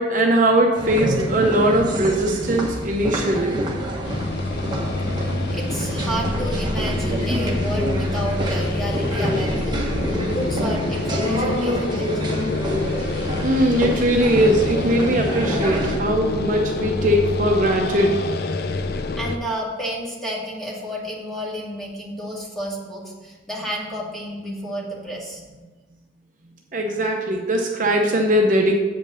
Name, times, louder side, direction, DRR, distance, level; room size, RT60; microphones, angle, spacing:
voice 1, 0.0-3.6 13.4-18.2 26.7-28.8, right 1 dB, 45° right, 1 dB, 0.7 m, -20 dB
sound 1, 0.7-16.0, equal, 25° right, 1.2 m, -27 dB
sound 2, 4.0-19.4, left 2 dB, 55° left, 0.5 m, -27 dB
voice 2, 5.5-12.2 19.2-25.7, equal, ahead, -5 dB, 2.1 m, -31 dB
7.9 x 5.2 x 6.8 m, 1.3 s
head